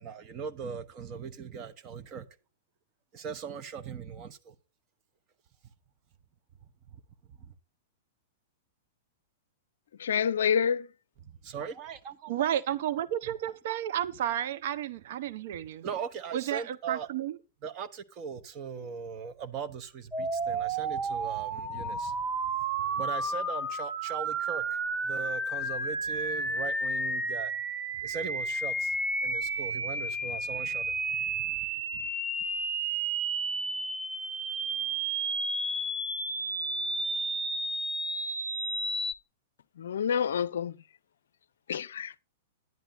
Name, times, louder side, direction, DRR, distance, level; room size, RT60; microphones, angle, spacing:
voice 1, 0.0-2.2 3.1-4.5 7.4-7.5 11.2-12.4 15.8-17.1 17.6-22.2 22.8-27.5 28.0-28.9 29.2-31.7 31.9-32.1, right 6 dB, 30° right, 1.1 m, -39 dB
voice 2, 10.0-10.9 39.8-40.7 41.7-42.1, left 7 dB, 60° left, 0.5 m, -27 dB
voice 3, 12.3-15.8 16.3-17.4, right 11 dB, 50° right, 0.7 m, -32 dB
sound 1, 20.1-39.1, right 2 dB, 15° right, 1.3 m, -32 dB
11.0 x 10.0 x 4.1 m
figure-of-eight pair, 100°, 0 cm